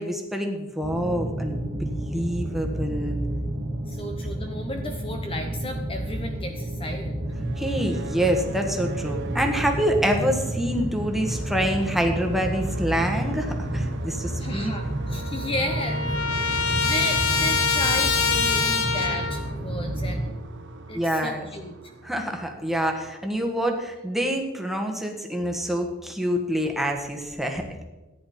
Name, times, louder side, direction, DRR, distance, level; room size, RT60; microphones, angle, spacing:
voice 1, 0.0-3.2 7.6-14.7 20.9-21.5 22.0-27.8, equal, ahead, 2 dB, 1.5 m, -26 dB
sound 1, 0.8-20.3, right 1 dB, 40° right, 1.8 m, -31 dB
voice 2, 3.9-7.2 14.4-20.3 20.9-21.8, left 1 dB, 25° left, 4 dB, 0.9 m, -34 dB
sound 2, 7.2-24.1, right 3 dB, 60° right, 0.9 m, -39 dB
Trumpet, 14.7-14.8 15.1-19.5, left 5 dB, 85° left, 1.3 m, -25 dB
14.5 x 10.0 x 4.3 m, 1.1 s
head